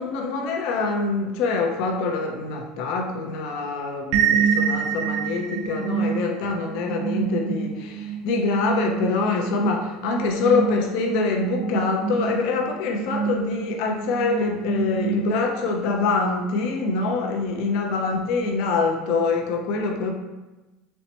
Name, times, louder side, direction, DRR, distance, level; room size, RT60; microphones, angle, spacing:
voice 1, 0.0-20.1, left 3 dB, 70° left, 2 dB, 0.6 m, -25 dB
sound 1, 4.1-15.8, right 7 dB, 60° right, 0.4 m, -27 dB
4.2 x 2.1 x 2.9 m, 1.1 s
supercardioid pair, 115°, 0 cm